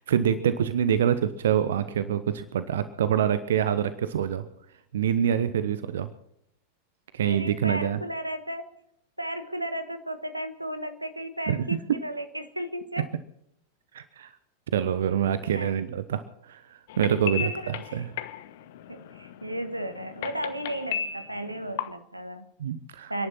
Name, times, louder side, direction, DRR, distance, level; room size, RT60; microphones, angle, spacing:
voice 1, 0.0-4.4 4.9-6.1 7.1-8.0 11.5-11.6 11.9-12.0 13.9-14.3 14.7-18.1 22.6-23.1, right 9 dB, 60° right, 13 dB, 1.0 m, -26 dB
voice 2, 7.2-8.7 9.2-13.1 15.5-15.8 17.4-18.0 18.9-22.5 23.1-23.3, right 1 dB, 85° right, 9 dB, 1.4 m, -34 dB
sound 1, 16.9-21.9, left 9 dB, 55° left, 1.2 m, -36 dB
29.5 x 11.0 x 4.2 m, 0.76 s
figure-of-eight pair, 90°, 0 cm